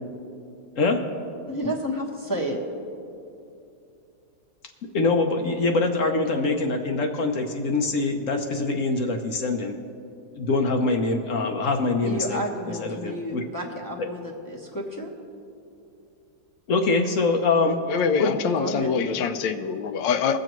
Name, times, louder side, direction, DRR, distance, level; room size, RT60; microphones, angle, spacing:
voice 1, 1.5-2.6 12.0-15.1 18.4-19.2, equal, 15° left, -2 dB, 0.7 m, -31 dB
voice 2, 4.9-9.8 10.4-12.4 12.8-13.4 16.7-17.8 18.2-18.4, left 3 dB, 60° left, 4 dB, 0.8 m, -24 dB
voice 3, 17.9-20.4, left 6 dB, 80° left, 9 dB, 1.3 m, -25 dB
22.0 x 7.5 x 3.0 m, 2.6 s
omnidirectional pair, 2.0 m